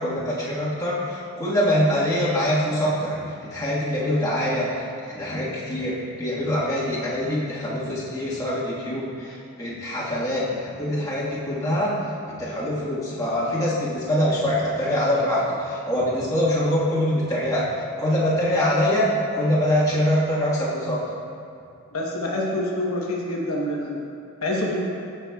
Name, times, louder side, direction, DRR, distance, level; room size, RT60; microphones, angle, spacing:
voice 1, 0.0-11.9 12.3-21.0, equal, 15° left, -8 dB, 1.5 m, -24 dB
voice 2, 21.9-24.0 24.4-24.8, left 1 dB, 70° left, -3 dB, 1.1 m, -26 dB
14.0 x 5.9 x 2.3 m, 2.6 s
head